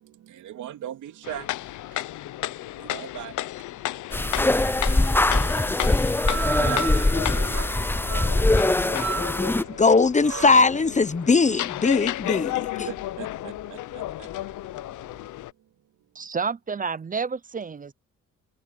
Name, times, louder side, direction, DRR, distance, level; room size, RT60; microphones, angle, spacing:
voice 1, 0.0-3.6 4.6-8.1 12.8-14.7 15.6-15.7, right 12 dB, 80° right, 2.8 m, -42 dB
sound 1, 1.2-15.5, left 15 dB, 75° left, 0.8 m, -33 dB
sound 2, 4.1-9.6, left 2 dB, 5° left, 0.6 m, -22 dB
sound 3, 6.1-15.2, right 6 dB, 60° right, 6.2 m, -36 dB
voice 2, 9.8-12.7, left 4 dB, 25° left, 1.0 m, -20 dB
voice 3, 16.1-17.9, right 5 dB, 25° right, 0.7 m, -30 dB
cardioid pair, 90°, 30 cm